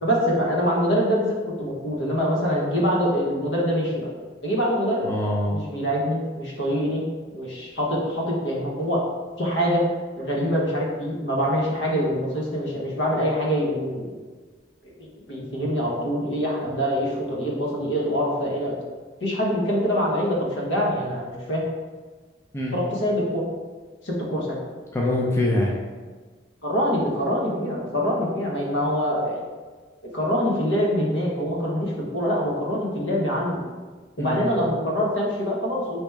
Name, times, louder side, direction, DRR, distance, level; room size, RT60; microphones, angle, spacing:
voice 1, 0.0-4.1 4.4-5.1 5.5-7.0 7.3-9.0 9.4-9.9 10.2-14.1 14.8-18.8 19.2-21.6 22.7-23.4 24.0-24.6 26.6-29.4 30.1-33.6 34.2-36.0, equal, 75° left, -3 dB, 0.9 m, -24 dB
voice 2, 5.0-5.6 15.4-15.5 22.5-22.7 24.9-25.8 34.2-34.6, left 1 dB, 15° left, -3 dB, 0.4 m, -24 dB
3.3 x 2.9 x 3.4 m, 1.4 s
head